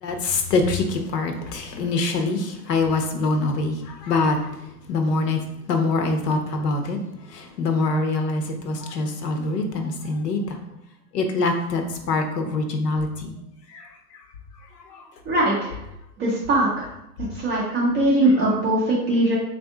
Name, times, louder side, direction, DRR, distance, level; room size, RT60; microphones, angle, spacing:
voice 1, 0.0-4.6 4.9-7.0 7.3-10.6 11.1-13.3 13.7-14.2 14.8-15.1 18.2-18.3, left 3 dB, 80° left, 5 dB, 0.9 m, -24 dB
voice 2, 15.3-15.7 16.2-16.9 17.3-19.3, right 1 dB, 15° right, -7 dB, 0.3 m, -21 dB
3.4 x 2.6 x 3.4 m, 0.84 s
hypercardioid pair, 120°, 48 cm